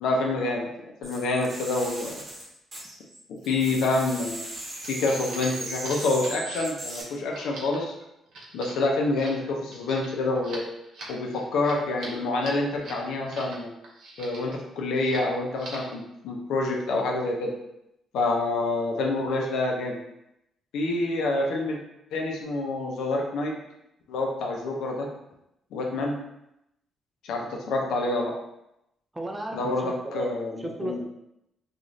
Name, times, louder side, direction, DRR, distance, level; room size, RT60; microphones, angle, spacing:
voice 1, 0.0-0.7 1.0-2.2 3.5-4.4 4.9-7.9 8.5-10.6 11.1-13.7 14.2-17.5 18.1-20.0 20.7-21.8 22.1-23.5 24.1-25.1 25.7-26.2 27.2-28.3 29.5-31.0, left 2 dB, 85° left, 0 dB, 0.5 m, -27 dB
sound 1, 1.0-3.2 3.4-7.0, right 1 dB, 40° right, 1.0 m, -37 dB
sound 2, 4.4-13.6 13.8-14.6 14.9-15.3 15.6-16.0, right 2 dB, 70° right, 0.7 m, -43 dB
voice 2, 29.1-31.0, right 1 dB, 15° right, 1 dB, 0.5 m, -34 dB
2.5 x 2.4 x 3.1 m, 0.84 s
cardioid pair, 90°, 0 cm